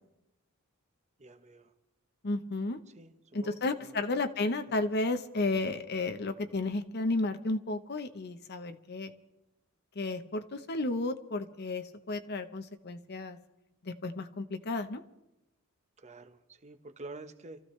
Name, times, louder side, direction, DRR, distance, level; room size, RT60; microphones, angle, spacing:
voice 1, 1.2-1.7 3.0-4.0 4.7-4.8 16.0-17.6, right 2 dB, 35° right, 8 dB, 1.1 m, -48 dB
voice 2, 2.2-2.8 3.3-9.1 9.9-13.4 13.8-15.0, left 2 dB, 50° left, 8 dB, 0.9 m, -33 dB
28.0 x 14.5 x 3.2 m, 0.90 s
head